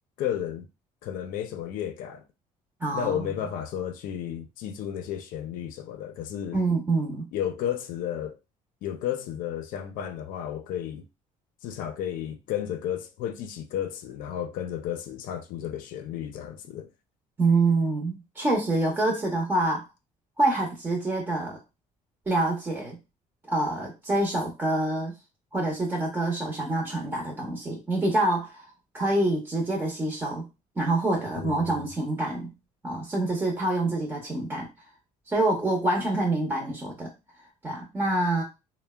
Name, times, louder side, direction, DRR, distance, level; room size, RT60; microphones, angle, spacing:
voice 1, 0.2-0.7 1.0-2.2 2.9-6.6 7.3-8.4 8.8-11.0 11.6-16.9 31.4-31.9, left 10 dB, 75° left, 0.5 m, -33 dB
voice 2, 2.8-3.2 6.5-7.2 17.4-19.9 20.4-21.6 22.3-23.0 23.5-25.1 25.5-30.4 30.8-32.5 32.8-34.7 35.3-37.1 37.6-38.4, right 2 dB, 15° right, 0.7 m, -26 dB
3.2 x 2.1 x 2.2 m
cardioid pair, 120°, 14 cm